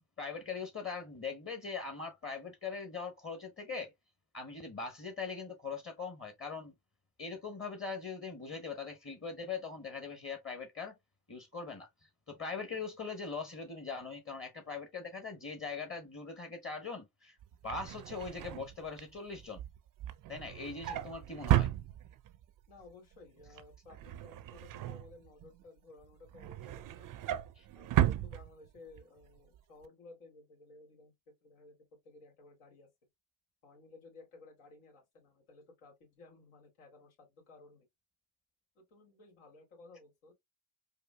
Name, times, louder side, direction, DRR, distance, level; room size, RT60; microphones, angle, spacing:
voice 1, 0.0-3.9 4.3-6.7 7.2-10.9 11.3-11.9 12.3-17.4 17.6-19.6 20.3-21.7 27.6-27.7, left 4 dB, 25° left, 1.0 m, -41 dB
Drawer open or close, 17.4-22.4 22.8-23.1 23.4-25.6 26.0-29.0 29.4-29.6 29.8-29.9, right 13 dB, 45° right, 0.5 m, -35 dB
voice 2, 22.7-27.1 27.7-31.1 31.4-31.8 32.0-32.9 33.6-37.9 38.8-40.3, left 3 dB, 80° left, 2.2 m, -56 dB
4.8 x 2.4 x 2.2 m
supercardioid pair, 75°, 49 cm